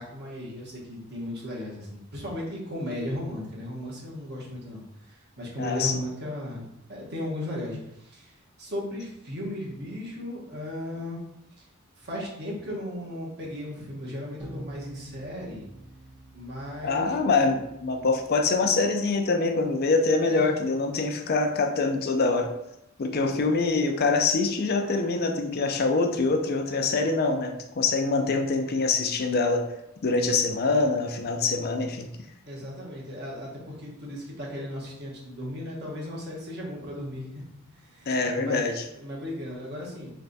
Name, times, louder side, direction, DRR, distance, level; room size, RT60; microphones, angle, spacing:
voice 1, 0.0-6.6 6.9-11.2 12.0-15.7 16.3-17.2 20.3-20.6 32.5-37.4 37.7-38.7 38.9-40.1, left 1 dB, 50° right, -3 dB, 1.2 m, -36 dB
voice 2, 5.6-6.0 16.8-22.5 23.0-29.6 30.0-32.1 38.1-38.8, left 3 dB, 50° left, 5 dB, 0.5 m, -24 dB
sound 1, 14.4-19.2, right 2 dB, 20° right, 0.6 m, -47 dB
3.4 x 3.3 x 4.0 m, 0.83 s
head